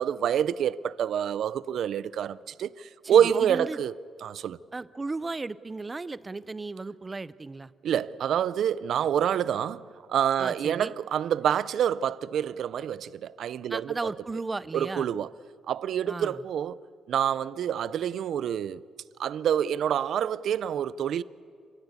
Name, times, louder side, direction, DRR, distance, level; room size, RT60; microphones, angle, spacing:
voice 1, 0.0-3.9 4.2-4.6 7.8-13.9 14.7-15.3 15.7-16.8 17.1-18.8 19.2-21.2, right 9 dB, 65° right, 0.5 m, -27 dB
voice 2, 3.0-3.8 4.7-7.7 10.4-10.9 13.7-15.1 16.1-16.4, right 3 dB, 20° right, 0.5 m, -35 dB
27.5 x 17.0 x 8.3 m
cardioid pair, 140°, 0 cm